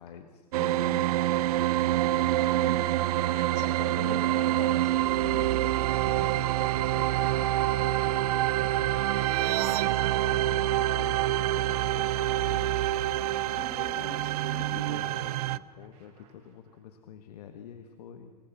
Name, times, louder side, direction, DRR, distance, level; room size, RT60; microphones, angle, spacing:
voice 1, 0.0-1.2 1.9-2.4 5.2-12.8 14.5-18.3, left 8 dB, 75° left, 7 dB, 1.5 m, -47 dB
sound 1, 0.5-15.6, right 14 dB, 70° right, 0.6 m, -26 dB
voice 2, 2.4-3.0 3.3-5.5 13.5-14.7, left 3 dB, 60° left, 6 dB, 4.3 m, -42 dB
sound 2, 11.1-16.8, right 5 dB, 55° right, 7.3 m, -60 dB
25.5 x 19.5 x 6.1 m, 1.5 s
hypercardioid pair, 105°, 20 cm